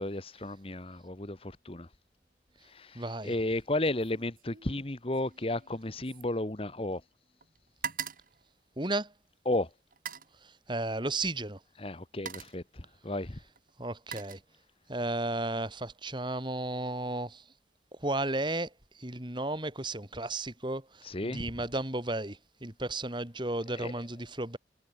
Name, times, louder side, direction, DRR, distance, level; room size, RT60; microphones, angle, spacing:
voice 1, 0.0-1.9 2.7-7.0 9.4-9.7 11.8-13.4 21.0-21.5 23.7-23.9, left 1 dB, 30° left, 1.3 m, -33 dB
voice 2, 3.0-3.3 8.8-9.1 10.7-11.6 13.8-14.4 14.9-17.4 18.0-18.7 19.0-20.8 21.2-24.6, right 2 dB, 25° right, 3.5 m, -33 dB
sound 1, 3.3-3.7 4.0-7.1 7.4-9.3 9.9-10.4 11.4-11.6 12.0-12.7 13.6-14.9 15.3-15.7, right 7 dB, 50° right, 3.0 m, -44 dB
head